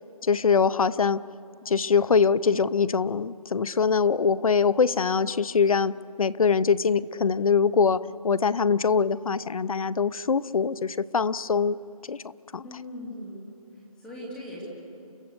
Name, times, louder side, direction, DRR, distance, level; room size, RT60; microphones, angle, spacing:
voice 1, 0.2-1.3 1.7-11.8 12.1-12.2 12.5-12.6, left 5 dB, 65° left, 17 dB, 0.6 m, -23 dB
voice 2, 12.6-13.4 13.7-14.6, left 1 dB, 5° left, -6 dB, 2.3 m, -40 dB
30.0 x 14.5 x 6.7 m, 2.6 s
hypercardioid pair, 170°, 19 cm